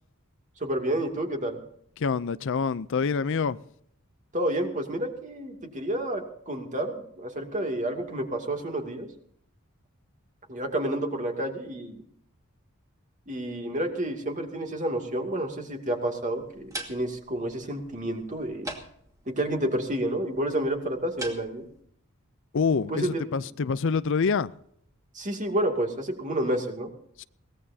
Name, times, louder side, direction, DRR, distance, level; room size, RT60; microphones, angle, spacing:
voice 1, 0.6-1.6 4.3-9.1 10.5-12.0 13.3-18.7 19.3-21.7 22.9-23.2 25.1-26.9, right 1 dB, 35° right, 2.5 m, -30 dB
voice 2, 2.0-3.6 22.5-24.5 27.2-27.3, left 5 dB, 60° left, 0.5 m, -26 dB
sound 1, 16.4-21.8, right 1 dB, 15° right, 2.4 m, -43 dB
22.5 x 18.5 x 2.8 m
head